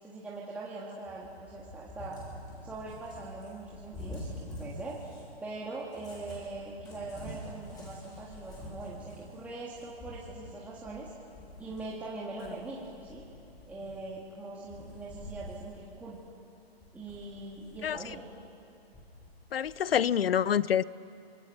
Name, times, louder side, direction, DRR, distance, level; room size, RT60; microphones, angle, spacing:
voice 1, 0.0-2.2 2.6-11.1 11.6-13.2 13.7-16.2 16.9-18.3, right 3 dB, 5° right, -5 dB, 1.8 m, -42 dB
Cat, 1.1-5.3 5.8-12.0 12.4-14.3 14.6-15.7 16.1-16.2 16.7-18.3 18.9-20.1, left 1 dB, 10° left, 6.5 m, -47 dB
voice 2, 19.5-20.8, left 9 dB, 70° left, 21 dB, 0.7 m, -26 dB
25.5 x 21.5 x 6.7 m, 2.7 s
hypercardioid pair, 145°, 31 cm